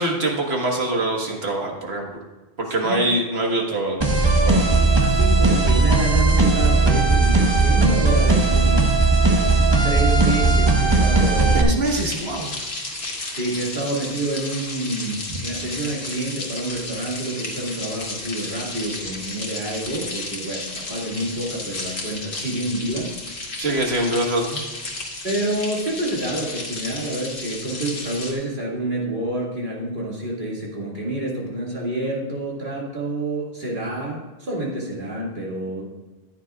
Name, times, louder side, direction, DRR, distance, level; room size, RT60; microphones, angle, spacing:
voice 1, 0.0-2.1 2.6-4.0 4.4-4.6 11.5-12.5 23.6-24.6, right 1 dB, 75° right, 0 dB, 1.8 m, -23 dB
sound 1, 4.0-11.6, right 3 dB, 25° right, 1.2 m, -17 dB
voice 2, 5.0-9.0 9.8-11.7 13.3-23.7 25.2-35.9, right 1 dB, 55° right, -4 dB, 2.4 m, -28 dB
sound 2, 11.8-28.3, left 2 dB, 75° left, 1.8 m, -33 dB
14.0 x 9.3 x 2.4 m, 1.2 s
omnidirectional pair, 1.1 m